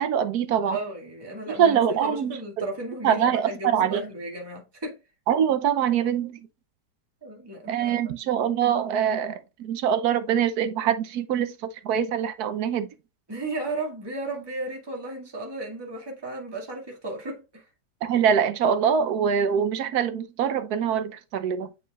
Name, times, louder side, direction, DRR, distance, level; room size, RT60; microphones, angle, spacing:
voice 1, 0.0-0.8 1.5-2.4 3.0-4.0 5.3-6.5 7.7-12.9 18.0-21.7, right 8 dB, 65° right, 1.2 m, -24 dB
voice 2, 0.6-5.0 7.2-8.0 13.3-17.7, right 2 dB, 15° right, 1.9 m, -34 dB
9.1 x 4.9 x 2.4 m
omnidirectional pair, 1.9 m